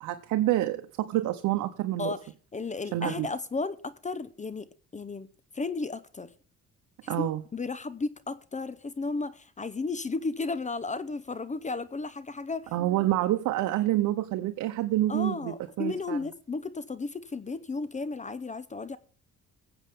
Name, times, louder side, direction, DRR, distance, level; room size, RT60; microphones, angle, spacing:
voice 1, 0.0-2.1 2.9-3.3 7.1-7.4 12.7-16.2, right 14 dB, 85° right, 0.8 m, -27 dB
voice 2, 2.0-5.3 5.5-6.3 7.0-12.7 15.1-19.0, left 3 dB, 25° left, 0.8 m, -34 dB
22.0 x 8.0 x 3.6 m
cardioid pair, 90°, 30 cm